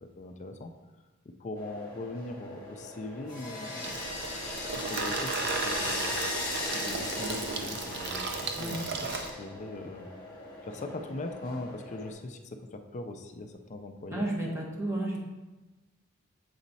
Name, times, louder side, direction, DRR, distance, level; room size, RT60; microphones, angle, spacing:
voice 1, 0.0-0.7 1.3-6.2 6.7-8.8 9.4-14.3, left 2 dB, 35° left, 6 dB, 0.4 m, -41 dB
sound 1, 1.6-12.1, left 2 dB, 20° left, 1.5 m, -38 dB
Water tap faucet / Sink (filling or washing), 3.8-9.3, right 4 dB, 50° right, 0.6 m, -35 dB
voice 2, 14.1-15.2, right 1 dB, 15° right, -3 dB, 1.1 m, -32 dB
7.1 x 4.1 x 4.1 m, 1.1 s
head